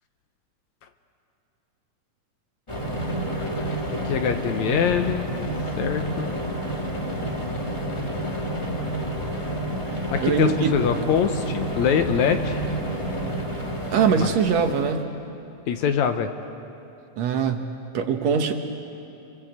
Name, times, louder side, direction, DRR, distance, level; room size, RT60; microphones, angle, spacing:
sound 1, 2.7-15.0, right 1 dB, 10° left, 1.5 m, -29 dB
voice 1, 3.9-5.3 5.8-6.3 10.1-12.6 14.1-14.3 15.7-16.3, left 8 dB, 70° left, 8 dB, 2.1 m, -24 dB
voice 2, 10.2-10.7 13.9-15.1 17.2-17.6 17.9-18.5, right 6 dB, 65° right, 5 dB, 2.1 m, -22 dB
28.0 x 23.5 x 8.0 m, 2.8 s
omnidirectional pair, 3.7 m